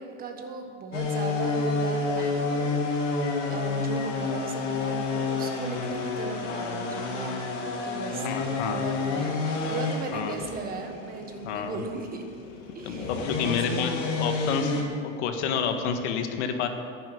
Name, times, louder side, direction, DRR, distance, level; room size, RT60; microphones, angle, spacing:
voice 1, 0.0-7.5 7.8-12.2 12.7-14.2, right 4 dB, 25° right, 4 dB, 1.3 m, -37 dB
sound 1, 0.9-14.8, left 3 dB, 90° left, 2.9 m, -29 dB
voice 2, 8.2-8.8 10.1-10.3 11.4-11.8 12.8-14.9 15.2-16.7, left 7 dB, 70° left, 6 dB, 1.6 m, -29 dB
10.5 x 10.5 x 9.4 m, 2.4 s
supercardioid pair, 155°, 36 cm